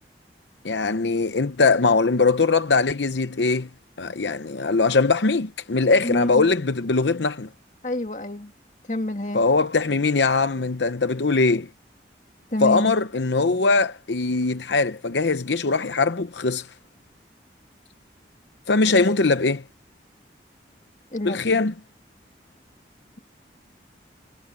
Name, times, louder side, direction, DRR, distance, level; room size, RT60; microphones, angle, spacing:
voice 1, 0.6-3.7 4.0-7.5 9.3-11.7 12.6-16.7 18.7-19.6 21.2-21.7, left 3 dB, 80° left, 0.8 m, -21 dB
voice 2, 6.0-6.5 7.8-8.5 8.9-9.4 12.5-13.0 21.1-21.6, left 1 dB, 40° left, 2.1 m, -28 dB
head